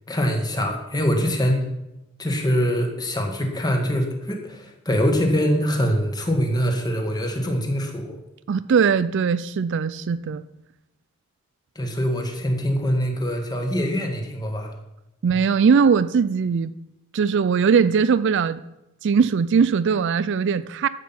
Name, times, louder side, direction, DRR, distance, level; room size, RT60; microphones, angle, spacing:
voice 1, 0.1-1.7 2.2-8.2 11.7-14.7, equal, 20° left, 3 dB, 1.6 m, -23 dB
voice 2, 8.5-10.4 15.2-16.7 17.1-18.6 19.0-20.9, right 6 dB, 55° right, 14 dB, 0.4 m, -20 dB
13.0 x 7.4 x 5.8 m, 0.92 s
head